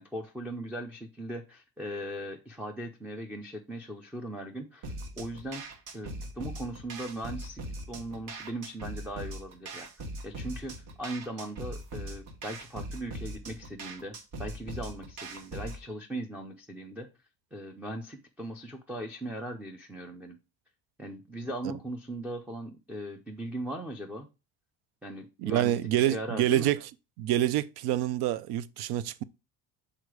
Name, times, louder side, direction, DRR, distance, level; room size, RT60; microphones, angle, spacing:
voice 1, 0.0-5.6 5.9-7.6 7.9-9.9 10.2-10.7 11.0-17.1 17.5-20.4 21.0-24.3 25.0-26.7, right 1 dB, 5° right, 0.4 m, -39 dB
sound 1, 4.8-15.8, right 1 dB, 50° right, 1.3 m, -41 dB
voice 2, 25.4-26.8 27.2-29.2, right 13 dB, 75° right, 0.6 m, -27 dB
6.5 x 3.8 x 4.7 m
cardioid pair, 170°, 39 cm